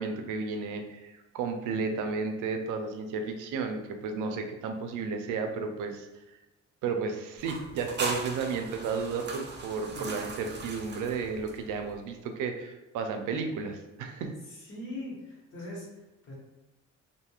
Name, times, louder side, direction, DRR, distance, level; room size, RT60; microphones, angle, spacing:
voice 1, 0.0-6.1 6.8-14.3, right 5 dB, 85° right, 6 dB, 0.5 m, -33 dB
sound 1, 7.4-12.0, right 3 dB, 35° right, 0.5 m, -39 dB
voice 2, 9.9-10.2 14.5-16.3, left 1 dB, 80° left, -4 dB, 1.3 m, -41 dB
2.8 x 2.7 x 2.3 m, 1.0 s
cardioid pair, 90°, 30 cm